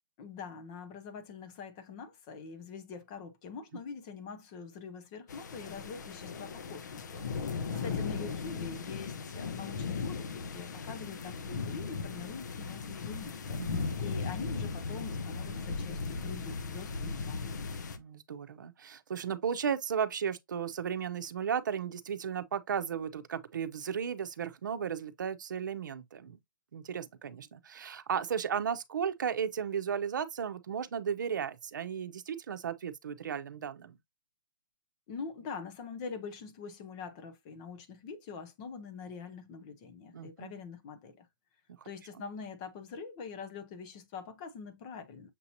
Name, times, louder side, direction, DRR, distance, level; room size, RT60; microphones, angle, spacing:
voice 1, 0.2-7.5 7.8-17.5 35.1-41.3 41.8-45.3, left 5 dB, 15° left, 0.5 m, -44 dB
sound 1, 5.3-18.0, left 4 dB, 55° left, 0.7 m, -37 dB
voice 2, 13.6-14.0 18.0-26.4 26.7-34.0 40.1-40.5 42.2-42.3, right 7 dB, 60° right, 0.7 m, -35 dB
6.7 x 2.8 x 2.7 m
hypercardioid pair, 180°, 11 cm